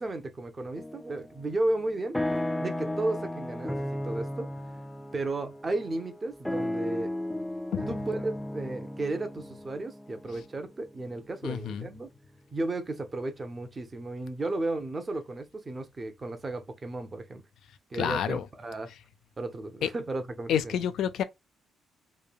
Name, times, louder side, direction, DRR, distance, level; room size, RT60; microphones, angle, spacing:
voice 1, 0.0-2.2 2.6-4.5 5.1-7.1 7.9-12.1 12.5-17.4 17.9-18.9 19.4-20.8, right 2 dB, 30° right, 0.7 m, -34 dB
sound 1, 0.8-1.3 1.7-11.7, left 1 dB, 5° left, 0.4 m, -35 dB
voice 2, 11.4-11.9 18.0-18.4 19.8-19.9 20.5-21.2, left 9 dB, 75° left, 0.4 m, -28 dB
3.1 x 2.2 x 2.3 m
cardioid pair, 90°, 0 cm